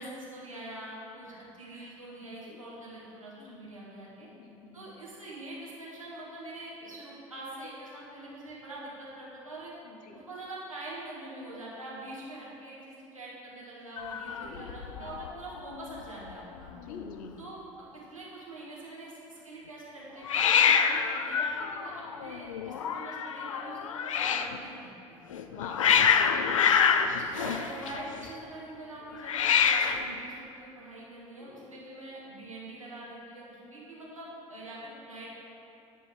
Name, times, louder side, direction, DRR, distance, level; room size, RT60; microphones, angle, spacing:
voice 1, 0.0-4.3 4.7-9.7 10.1-16.7 17.4-17.6 18.1-25.2 27.2-35.3, right 1 dB, 90° right, -6 dB, 1.9 m, -44 dB
voice 2, 3.4-3.7 4.2-4.9 9.8-10.2 14.4-15.1 16.9-17.3 25.5-26.8 27.0-27.4 31.4-31.7, left 5 dB, 55° left, 4 dB, 1.1 m, -47 dB
Hiss, 14.0-15.3 15.6-16.0 16.3-16.4 16.6-17.3 20.3-24.6 25.3-28.3 29.2-30.1, left 7 dB, 80° left, 0.4 m, -26 dB
10.5 x 4.6 x 7.5 m, 2.8 s
figure-of-eight pair, 60°, 17 cm